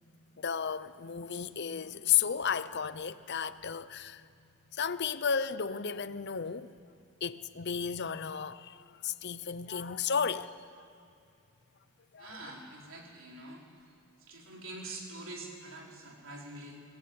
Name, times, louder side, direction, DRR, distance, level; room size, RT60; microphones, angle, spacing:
voice 1, 0.4-4.2 4.7-6.7 7.2-8.8 9.0-10.6 12.1-12.4, left 7 dB, 50° left, 0.7 m, -33 dB
voice 2, 12.2-13.6 14.2-16.8, right 2 dB, 60° right, 4.2 m, -45 dB
25.0 x 19.0 x 8.8 m
head